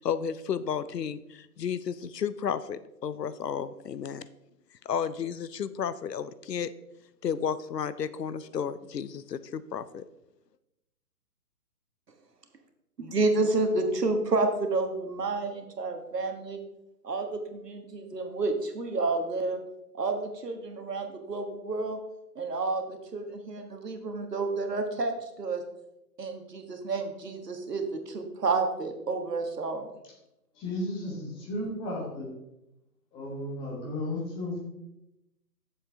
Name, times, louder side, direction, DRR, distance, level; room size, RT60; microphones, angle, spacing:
voice 1, 0.0-4.3 4.9-6.7 7.2-10.1, left 7 dB, 75° left, 15 dB, 0.7 m, -32 dB
voice 2, 13.0-16.6 17.0-19.6 19.9-22.0 22.3-25.6 26.2-29.9, right 3 dB, 75° right, 5 dB, 1.5 m, -30 dB
voice 3, 30.5-32.3 33.1-34.6, left 1 dB, 10° left, -2 dB, 1.0 m, -34 dB
8.5 x 7.1 x 3.4 m, 0.89 s
figure-of-eight pair, 140°, 49 cm